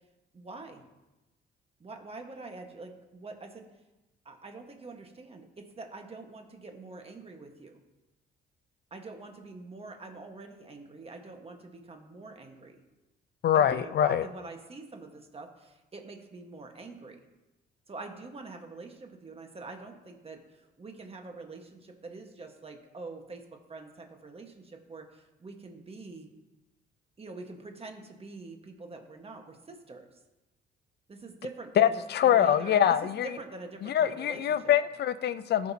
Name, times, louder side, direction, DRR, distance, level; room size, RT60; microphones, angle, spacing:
voice 1, 0.3-0.8 1.8-3.7 4.2-7.8 8.9-12.8 13.5-17.2 17.9-23.4 23.7-26.3 27.2-30.1 31.1-34.8, right 3 dB, 30° right, 4 dB, 1.4 m, -45 dB
voice 2, 13.4-14.3 31.8-33.3 33.8-35.7, left 10 dB, 55° left, 14 dB, 0.5 m, -24 dB
15.0 x 5.3 x 2.8 m, 1.0 s
cardioid pair, 90°, 20 cm